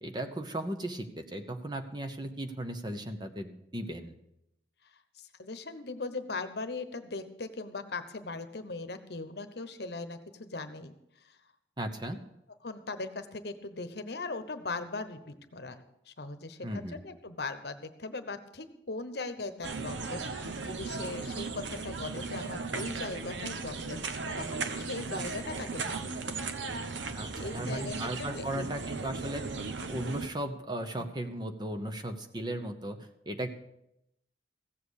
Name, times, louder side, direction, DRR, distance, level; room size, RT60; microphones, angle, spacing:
voice 1, 0.0-4.1 11.8-12.2 16.6-17.0 27.1-29.4 29.9-33.5, right 1 dB, 25° right, 7 dB, 0.9 m, -36 dB
voice 2, 4.9-11.4 12.6-26.7 27.1-28.7 30.9-31.1, left 3 dB, 60° left, 10 dB, 1.0 m, -40 dB
sound 1, 19.6-30.3, right 4 dB, 85° right, 1.0 m, -37 dB
15.5 x 7.6 x 6.4 m, 0.81 s
head